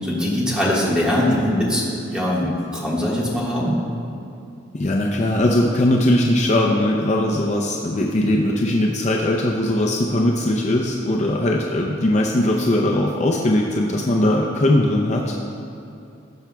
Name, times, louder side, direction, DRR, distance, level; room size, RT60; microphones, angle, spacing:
voice 1, 0.0-3.7, left 1 dB, 5° right, -6 dB, 1.5 m, -21 dB
voice 2, 4.7-15.4, left 1 dB, 35° left, -1 dB, 0.5 m, -20 dB
17.5 x 6.0 x 2.3 m, 2.6 s
head